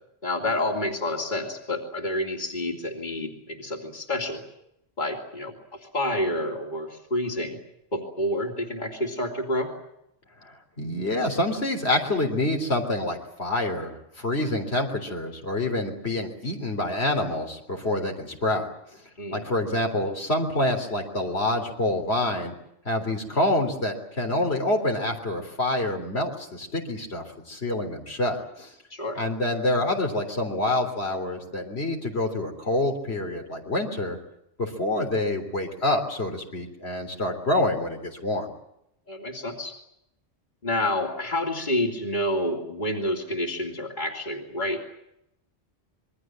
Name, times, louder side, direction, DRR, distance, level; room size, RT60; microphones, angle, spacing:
voice 1, 0.2-4.4 5.0-5.5 5.9-7.6 7.9-9.7 19.2-19.4 28.9-29.2 39.1-39.7 40.6-44.9, left 1 dB, 45° left, 1 dB, 3.2 m, -28 dB
voice 2, 10.4-18.7 18.9-19.0 19.3-22.5 22.9-28.7 29.2-34.2 34.6-38.5, left 1 dB, 75° left, 3 dB, 3.9 m, -27 dB
27.0 x 22.0 x 7.7 m, 0.79 s
omnidirectional pair, 1.1 m